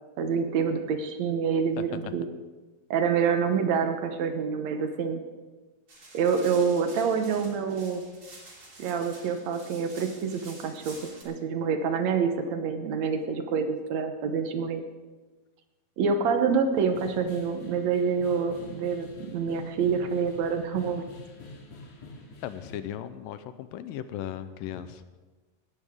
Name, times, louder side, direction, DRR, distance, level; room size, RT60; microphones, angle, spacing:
voice 1, 0.2-2.3 2.9-5.2 6.1-8.0 8.8-11.0 11.3-14.8 16.0-21.0, right 6 dB, 65° right, 7 dB, 1.9 m, -27 dB
sound 1, 5.9-11.2, right 2 dB, 30° right, 2.8 m, -49 dB
sound 2, 16.8-22.7, left 2 dB, 65° left, 3.4 m, -47 dB
voice 2, 22.4-25.0, left 11 dB, 85° left, 12 dB, 2.3 m, -37 dB
18.5 x 13.5 x 3.6 m, 1.3 s
omnidirectional pair, 4.0 m